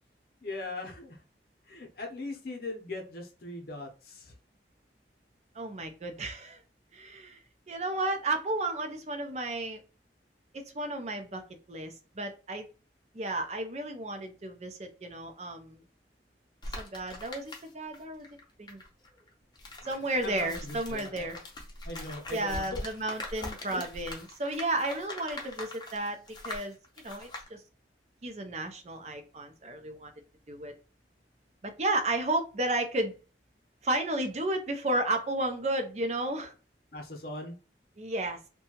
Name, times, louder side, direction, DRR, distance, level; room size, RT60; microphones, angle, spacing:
voice 1, 0.4-1.2 1.7-4.3 20.0-21.3 21.8-22.8 23.4-24.2 36.9-37.5, left 2 dB, 60° left, 2 dB, 0.7 m, -40 dB
voice 2, 5.6-6.6 6.9-7.4 7.7-9.8 10.5-11.4 11.7-12.7 13.1-15.8 16.8-18.3 18.6-18.8 19.8-21.4 22.3-27.6 28.2-30.1 30.5-30.7 31.6-33.2 33.8-36.5 38.0-38.4, right 2 dB, 40° right, 6 dB, 0.5 m, -33 dB
sound 1, 16.6-18.0 18.2-27.5, left 1 dB, 25° left, 0.6 m, -42 dB
2.7 x 2.2 x 2.8 m, 0.35 s
head